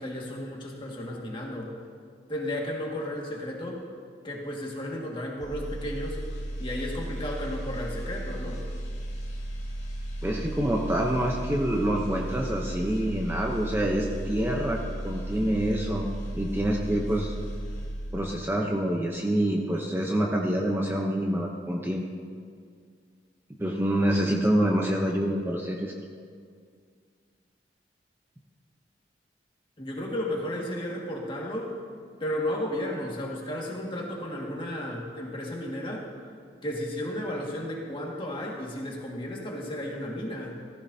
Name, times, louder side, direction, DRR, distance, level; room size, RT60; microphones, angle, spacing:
voice 1, 0.0-1.7 2.3-3.9 4.2-6.2 6.6-8.6 29.8-31.7 32.2-36.1 36.6-40.6, left 1 dB, 30° left, -2 dB, 1.9 m, -33 dB
sound 1, 5.4-18.5 18.9-19.1, right 1 dB, 50° left, 3.6 m, -35 dB
voice 2, 10.2-14.8 15.0-16.1 16.4-17.3 18.1-22.1 23.6-25.9, right 1 dB, 15° right, -1 dB, 0.7 m, -26 dB
15.0 x 14.5 x 2.8 m, 2.1 s
head